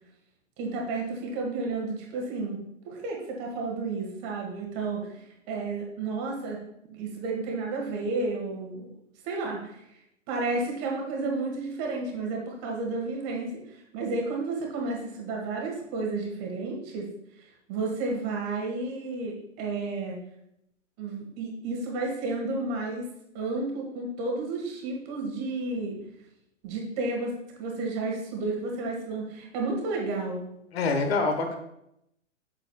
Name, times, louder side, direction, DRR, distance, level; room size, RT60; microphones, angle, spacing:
voice 1, 0.6-2.6 2.9-6.6 6.9-8.9 9.2-9.8 10.3-17.1 17.4-20.2 21.0-23.1 23.3-26.0 26.6-27.3 27.6-30.5, right 3 dB, 30° right, 0 dB, 1.7 m, -32 dB
voice 2, 30.7-31.6, left 3 dB, 50° left, 6 dB, 1.3 m, -25 dB
7.6 x 6.9 x 2.3 m, 0.80 s
figure-of-eight pair, 120°, 38 cm